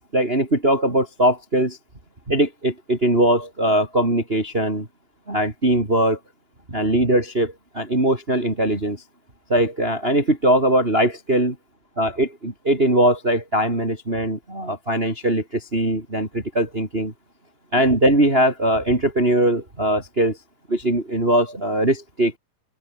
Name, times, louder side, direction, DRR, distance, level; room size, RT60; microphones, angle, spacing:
voice 1, 0.0-1.8 2.3-4.9 5.3-6.2 6.7-9.0 9.5-11.6 12.0-17.1 17.7-20.4 20.7-22.4, right 1 dB, 15° right, 4.0 m, -21 dB
open air
omnidirectional pair, 4.3 m